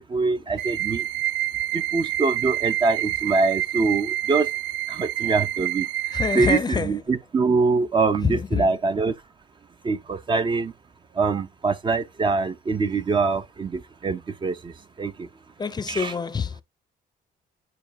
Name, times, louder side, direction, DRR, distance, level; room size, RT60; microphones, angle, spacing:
voice 1, 0.1-1.1 1.7-4.5 4.9-9.2 9.8-10.7 11.1-15.3 15.9-16.1, right 4 dB, 30° right, 0.6 m, -24 dB
sound 1, 0.6-6.6, right 13 dB, 90° right, 0.5 m, -27 dB
voice 2, 6.1-6.9 8.2-8.7 15.6-16.6, left 6 dB, 25° left, 0.6 m, -26 dB
9.6 x 4.5 x 2.8 m
cardioid pair, 115°, 17 cm